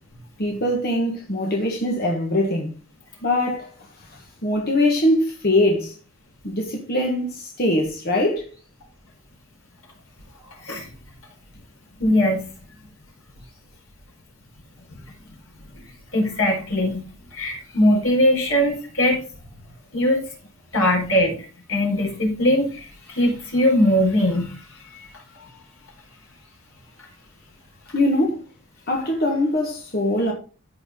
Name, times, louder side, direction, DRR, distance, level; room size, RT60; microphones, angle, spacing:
voice 1, 0.4-2.7 3.2-5.9 6.4-8.5 27.9-28.4 28.9-30.3, left 1 dB, 45° left, 1.6 m, -22 dB
voice 2, 12.0-12.4 16.1-17.0 17.3-19.2 19.9-20.2 20.7-21.3 21.7-24.6 24.9-25.1 25.4-25.5, left 1 dB, 85° left, 4.6 m, -20 dB
14.0 x 4.9 x 3.8 m
head